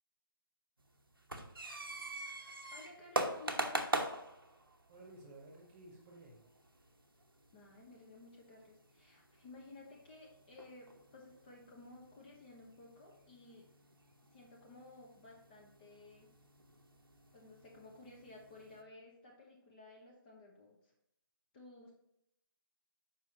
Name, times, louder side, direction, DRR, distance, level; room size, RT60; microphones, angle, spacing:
sound 1, 0.8-18.8, right 2 dB, 80° right, 1.0 m, -44 dB
voice 1, 2.7-4.1 7.5-13.6 14.3-16.3 17.3-20.9 21.5-21.9, left 2 dB, 25° left, -1 dB, 1.1 m, -56 dB
voice 2, 4.9-6.4, right 2 dB, 15° right, -1 dB, 1.3 m, -55 dB
7.4 x 5.4 x 2.9 m, 0.80 s
figure-of-eight pair, 145°, 12 cm